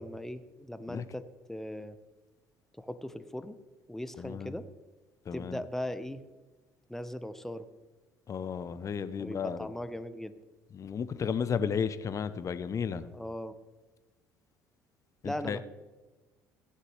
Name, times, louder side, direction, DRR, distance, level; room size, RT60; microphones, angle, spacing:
voice 1, 0.0-2.0 2.7-3.6 3.9-4.7 5.3-6.2 6.9-7.7 9.2-10.3 13.1-13.5 15.2-15.6, left 1 dB, 5° left, 12 dB, 0.9 m, -39 dB
voice 2, 4.2-4.5 5.3-5.6 8.3-9.7 10.7-13.1 15.2-15.6, left 6 dB, 40° left, 13 dB, 0.8 m, -33 dB
16.5 x 9.6 x 3.3 m, 1.2 s
hypercardioid pair, 60°, 9 cm